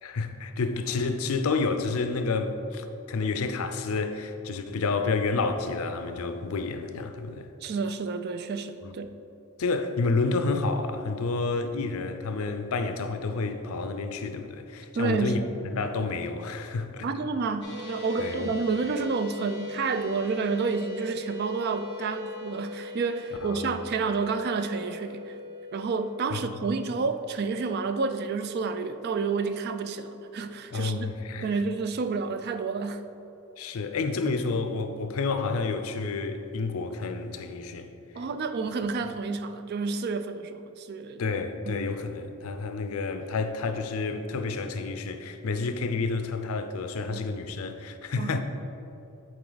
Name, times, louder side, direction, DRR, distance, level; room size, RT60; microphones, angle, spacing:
voice 1, 0.0-7.5 8.8-8.9 9.6-15.4 15.7-17.1 18.2-18.5 23.4-23.7 26.3-26.7 30.7-31.5 33.6-37.9 41.2-48.4, left 3 dB, 80° left, 0.5 m, -30 dB
voice 2, 7.6-9.1 14.9-15.9 17.0-25.4 25.7-31.1 31.4-33.0 38.2-41.2 41.6-41.8 47.1-47.3 48.2-48.4, right 4 dB, 45° right, 0.3 m, -30 dB
sound 1, 17.6-29.9, left 3 dB, 55° left, 1.4 m, -41 dB
7.7 x 4.2 x 3.9 m
head